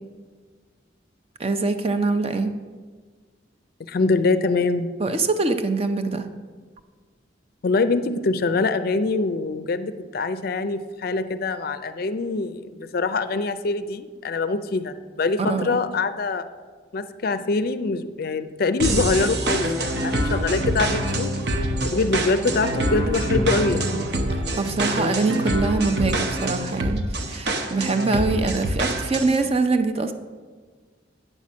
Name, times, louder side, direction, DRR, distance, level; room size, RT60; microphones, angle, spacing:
voice 1, 1.4-2.5 5.0-6.3 15.4-15.8 24.3-30.1, right 3 dB, 30° right, 8 dB, 0.5 m, -24 dB
voice 2, 3.9-4.9 7.6-16.5 16.9-21.3 21.8-23.9, left 3 dB, 50° left, 11 dB, 0.4 m, -24 dB
sound 1, 18.8-29.4, right 1 dB, 60° right, 0.8 m, -25 dB
9.0 x 5.8 x 6.2 m, 1.5 s
head